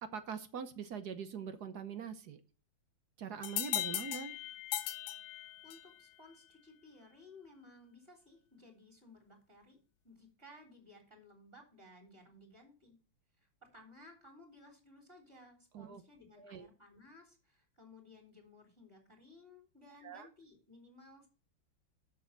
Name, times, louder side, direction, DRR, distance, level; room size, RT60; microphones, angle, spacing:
voice 1, 0.0-2.4 3.2-4.4 15.7-16.0 16.4-16.7 20.0-20.3, right 7 dB, 60° right, 10 dB, 1.3 m, -43 dB
sound 1, 3.4-6.0, left 13 dB, 85° left, 1.5 m, -38 dB
voice 2, 5.6-9.8 10.0-13.0 13.4-21.3, left 2 dB, 30° right, 2 dB, 3.6 m, -58 dB
7.7 x 7.0 x 6.3 m, 0.36 s
omnidirectional pair, 2.1 m